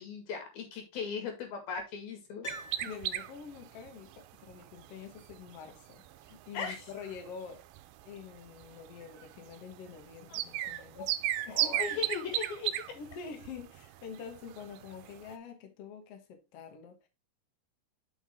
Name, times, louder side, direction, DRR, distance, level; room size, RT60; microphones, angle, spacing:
voice 1, 0.0-2.5 6.5-6.8 11.0-11.1 11.5-12.7, left 6 dB, 85° left, 4.0 m, -38 dB
Piano, 2.4-3.7 4.0-4.1, left 3 dB, 25° left, 2.4 m, -47 dB
sound 1, 2.5-15.4, right 13 dB, 85° right, 2.4 m, -37 dB
voice 2, 2.8-7.6 8.0-11.1 11.5-12.1 12.9-17.1, left 6 dB, 55° left, 2.0 m, -46 dB
7.1 x 5.9 x 3.7 m
omnidirectional pair, 4.2 m